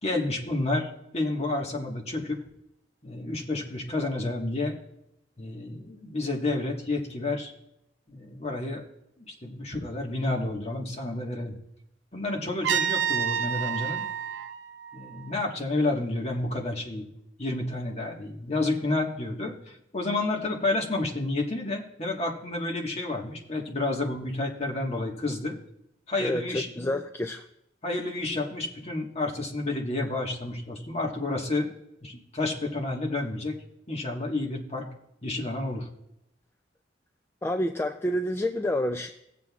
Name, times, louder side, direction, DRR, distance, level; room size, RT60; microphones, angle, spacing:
voice 1, 0.0-2.4 3.0-4.8 5.4-7.5 8.1-8.8 9.2-11.6 12.1-14.0 14.9-17.0 17.4-25.6 26.1-26.7 27.8-31.7 32.0-33.6 33.9-34.9 35.2-35.9, left 2 dB, 35° left, 0 dB, 1.5 m, -30 dB
Trumpet, 12.6-15.6, right 8 dB, 80° right, 0.6 m, -29 dB
voice 2, 26.2-27.5 37.4-39.1, left 1 dB, 15° left, 5 dB, 0.3 m, -28 dB
18.0 x 7.5 x 2.4 m, 0.82 s
head